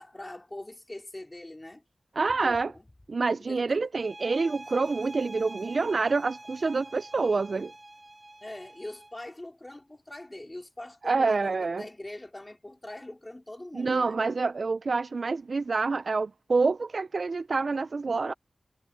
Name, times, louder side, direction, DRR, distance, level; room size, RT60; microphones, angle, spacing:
voice 1, 0.0-1.8 2.2-2.9 3.5-3.8 8.4-14.2, left 1 dB, 20° left, 4.3 m, -43 dB
voice 2, 2.2-2.7 3.1-7.7 11.0-11.8 13.7-18.3, right 4 dB, 60° right, 0.4 m, -27 dB
sound 1, 4.0-9.2, right 1 dB, 25° right, 2.6 m, -46 dB
wide cardioid pair, 85°, 0 cm